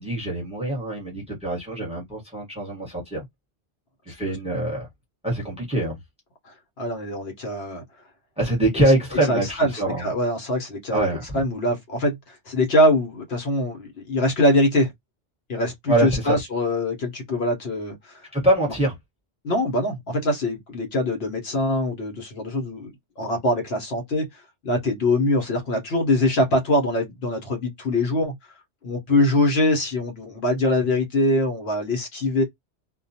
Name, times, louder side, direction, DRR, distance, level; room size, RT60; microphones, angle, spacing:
voice 1, 0.0-3.2 4.1-4.9 5.2-6.0 8.4-10.1 10.9-11.4 15.9-16.4 18.3-19.0, right 1 dB, 5° right, 1.1 m, -24 dB
voice 2, 6.5-7.8 9.2-14.9 15.5-18.2 19.4-22.9 23.2-28.3 28.8-32.4, left 1 dB, 70° left, 1.1 m, -23 dB
2.4 x 2.2 x 2.7 m
omnidirectional pair, 1.1 m